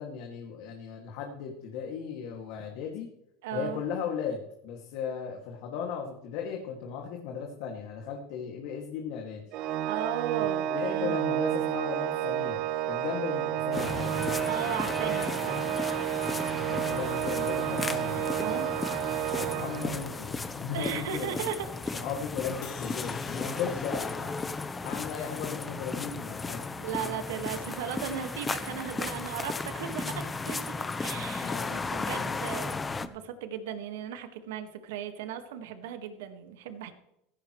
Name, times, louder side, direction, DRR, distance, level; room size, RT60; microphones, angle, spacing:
voice 1, 0.0-3.1 3.5-9.4 10.7-14.3 16.7-18.8 19.3-21.5 21.9-26.6 31.4-32.5, left 7 dB, 65° left, 1 dB, 2.3 m, -37 dB
voice 2, 3.4-3.8 9.9-11.2 14.5-15.8 16.4-16.8 17.9-19.1 20.7-22.0 26.8-30.7 31.0-36.9, right 8 dB, 80° right, 8 dB, 1.8 m, -37 dB
Organ, 9.5-20.3, right 11 dB, 55° right, 1.1 m, -31 dB
sound 1, 13.7-33.1, left 3 dB, 15° left, 1.0 m, -35 dB
sound 2, 22.6-25.8, left 10 dB, 50° left, 2.3 m, -51 dB
16.0 x 15.0 x 3.2 m, 0.83 s
supercardioid pair, 115°, 0 cm